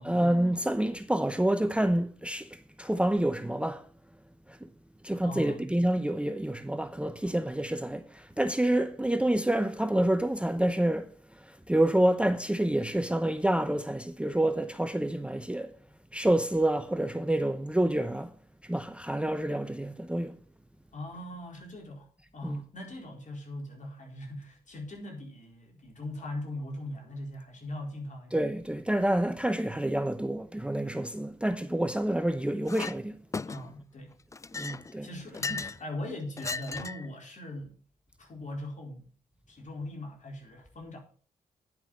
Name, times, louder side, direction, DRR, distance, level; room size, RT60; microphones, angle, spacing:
voice 1, 0.0-3.9 4.5-4.7 5.0-15.7 16.1-18.3 18.6-20.4 22.4-22.6 28.3-33.2 34.5-35.1, right 1 dB, 5° right, 0.8 m, -28 dB
voice 2, 5.2-5.7 7.2-7.3 20.9-22.1 22.3-28.4 33.5-34.1 34.6-37.7 38.2-39.0 39.5-41.0, left 1 dB, 50° left, 4.2 m, -40 dB
Chink clink, 32.7-33.0 33.3-33.8 34.3-35.8 36.4-37.1, left 4 dB, 20° left, 0.4 m, -36 dB
10.0 x 6.1 x 6.2 m
supercardioid pair, 45°, 16 cm